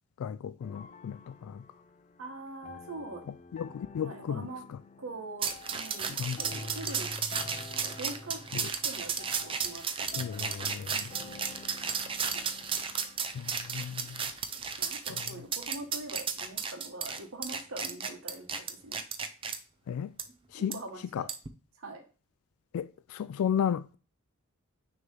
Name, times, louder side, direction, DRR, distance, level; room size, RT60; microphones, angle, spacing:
voice 1, 0.2-1.6 3.5-4.8 6.1-6.4 8.5-8.7 10.1-11.1 13.3-14.2 19.9-20.1 20.5-20.8 21.1-21.3 22.7-24.0, left 8 dB, 90° left, 0.3 m, -34 dB
sound 1, 0.6-16.8, left 3 dB, 35° left, 0.5 m, -49 dB
voice 2, 2.2-3.2 4.0-4.7 5.0-7.1 7.6-10.5 11.2-11.7 12.3-12.7 14.0-14.1 14.8-19.0 20.5-21.3 21.8-22.0, right 2 dB, 70° right, 1.1 m, -44 dB
sound 2, 5.4-19.6 20.2-20.3 20.7-20.8 21.3-21.5, right 6 dB, 25° right, 0.5 m, -34 dB
6.3 x 3.0 x 5.3 m
head